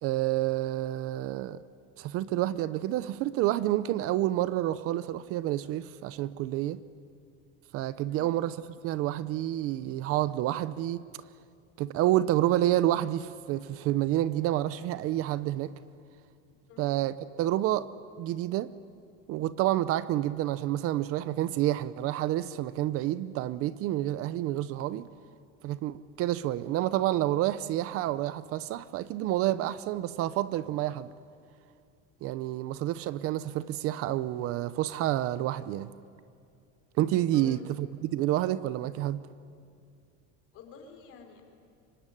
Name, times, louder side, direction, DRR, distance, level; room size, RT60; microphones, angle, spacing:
voice 1, 0.0-1.6 2.0-6.8 7.7-8.6 8.8-11.1 11.8-15.7 16.8-17.9 18.2-18.7 19.3-25.1 25.6-31.1 32.2-35.9 37.0-39.2, right 14 dB, 45° right, 0.7 m, -29 dB
voice 2, 37.3-37.6 40.5-41.4, left 7 dB, 45° left, 4.5 m, -49 dB
25.5 x 23.5 x 9.9 m
cardioid pair, 170°, 31 cm